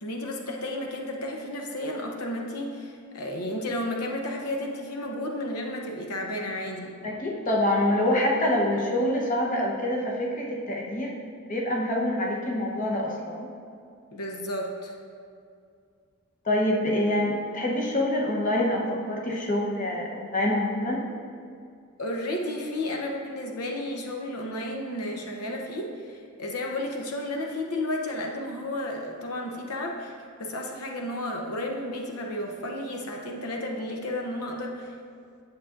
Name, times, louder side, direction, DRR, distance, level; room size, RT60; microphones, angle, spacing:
voice 1, 0.0-7.0 14.1-15.0 22.0-30.1 30.4-34.9, left 1 dB, 85° left, 1 dB, 0.8 m, -32 dB
voice 2, 7.0-11.2 11.4-13.5 16.4-21.0, left 1 dB, 35° left, -1 dB, 0.8 m, -26 dB
8.9 x 7.1 x 2.5 m, 2.3 s
head